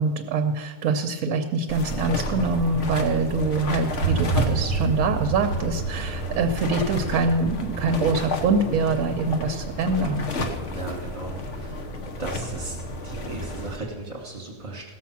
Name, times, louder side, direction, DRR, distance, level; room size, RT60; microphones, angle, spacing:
voice 1, 0.0-10.3, right 3 dB, 65° right, 6 dB, 1.0 m, -24 dB
sound 1, 1.7-13.8, left 1 dB, 50° left, 1.3 m, -31 dB
sound 2, 4.0-10.1, right 5 dB, 85° left, 3.0 m, -30 dB
voice 2, 10.7-11.9 12.2-12.8 13.0-14.9, right 2 dB, 30° right, -2 dB, 1.5 m, -36 dB
17.0 x 7.2 x 5.8 m, 1.5 s
omnidirectional pair, 1.7 m